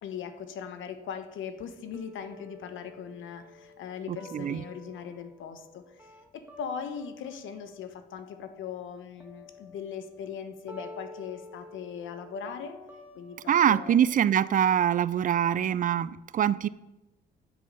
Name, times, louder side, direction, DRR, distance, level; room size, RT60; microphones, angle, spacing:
voice 1, 0.0-6.1 6.3-12.8 13.1-14.0, left 7 dB, 75° left, 9 dB, 1.1 m, -39 dB
sound 1, 1.9-7.9 8.2-16.0, left 2 dB, 10° right, 1.5 m, -51 dB
voice 2, 4.1-4.6 13.5-16.7, right 9 dB, 45° right, 18 dB, 0.4 m, -24 dB
9.2 x 7.8 x 5.5 m, 1.0 s
cardioid pair, 90°, 20 cm